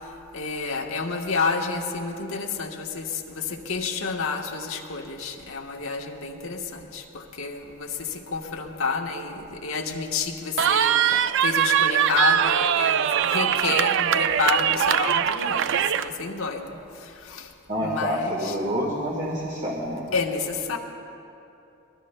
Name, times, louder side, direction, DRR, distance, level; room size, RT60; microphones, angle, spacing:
voice 1, 0.3-16.7 17.3-17.5 17.8-18.6 20.1-20.8, left 4 dB, 90° left, 2 dB, 1.2 m, -29 dB
Cheering, 10.6-16.1, right 9 dB, 65° right, 0.4 m, -22 dB
voice 2, 17.7-20.1, equal, 35° right, -3 dB, 1.6 m, -27 dB
24.0 x 19.5 x 2.2 m, 2.8 s
head